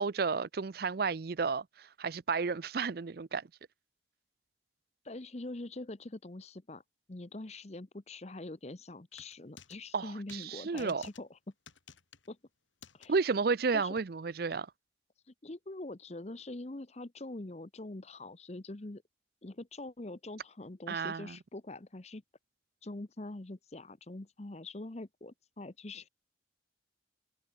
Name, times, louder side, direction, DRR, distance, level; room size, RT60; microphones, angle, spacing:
voice 1, 0.0-3.5 9.9-11.0 13.1-14.7 20.9-21.4, right 4 dB, 55° right, 0.5 m, -32 dB
voice 2, 5.0-6.8 7.1-11.4 12.3-12.4 12.9-13.1 13.7-13.9 15.3-19.0 19.4-22.2 22.8-26.1, left 2 dB, 35° left, 0.9 m, -44 dB
sound 1, 9.1-9.8 10.3-10.5 10.8-11.2 11.7-12.3 12.8-13.1 14.0-14.1, left 7 dB, 90° left, 3.1 m, -53 dB
head